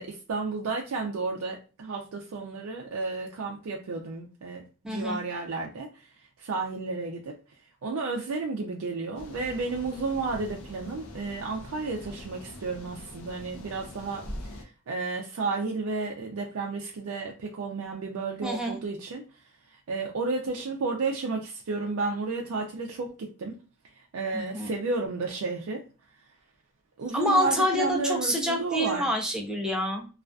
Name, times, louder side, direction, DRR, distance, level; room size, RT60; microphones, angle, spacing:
voice 1, 0.0-6.1 6.4-7.4 7.8-14.2 14.5-19.2 19.9-23.5 24.1-25.8 27.0-29.1, right 3 dB, 70° right, 0.4 m, -32 dB
voice 2, 4.8-5.2 18.4-18.8 24.3-24.7 27.1-30.1, equal, 5° right, 0.5 m, -27 dB
sound 1, 9.1-14.6, left 1 dB, 70° left, 0.5 m, -43 dB
2.4 x 2.3 x 2.2 m
head